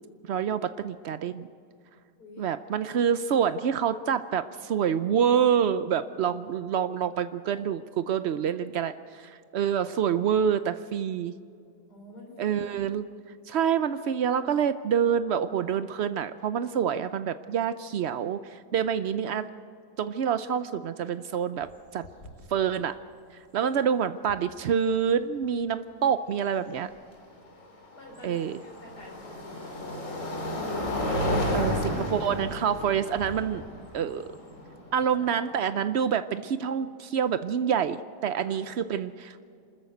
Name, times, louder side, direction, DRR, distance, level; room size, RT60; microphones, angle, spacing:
voice 1, 0.3-1.5 2.4-11.3 12.4-13.0 13.5-19.5 20.0-22.0 22.5-23.0 23.5-26.9 28.2-28.6 31.5-33.6 33.9-34.2 34.9-39.5, right 8 dB, 80° right, 12 dB, 0.5 m, -27 dB
voice 2, 11.9-12.6 27.9-28.4 28.6-30.2 33.5-33.6 35.1-35.5 38.4-38.6, left 1 dB, 65° left, 0 dB, 4.0 m, -48 dB
sound 1, 21.6-21.7 22.0-22.5 24.3-24.4 27.4-35.5, left 1 dB, 45° left, 3.3 m, -32 dB
27.0 x 13.5 x 7.9 m, 2.4 s
omnidirectional pair, 1.9 m